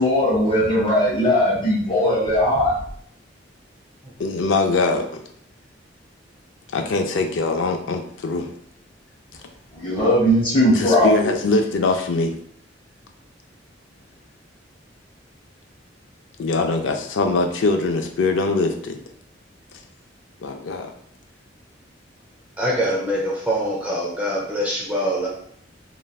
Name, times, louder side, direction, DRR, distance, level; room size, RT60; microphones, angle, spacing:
voice 1, 0.0-2.7 9.8-11.1, left 1 dB, 30° left, -5 dB, 0.8 m, -18 dB
voice 2, 4.2-5.2 6.7-8.5 10.7-12.3 16.4-19.0 20.4-20.9, left 3 dB, 85° left, 5 dB, 0.4 m, -22 dB
voice 3, 22.6-25.3, equal, 10° right, -4 dB, 0.5 m, -24 dB
3.1 x 2.5 x 2.2 m, 0.65 s
head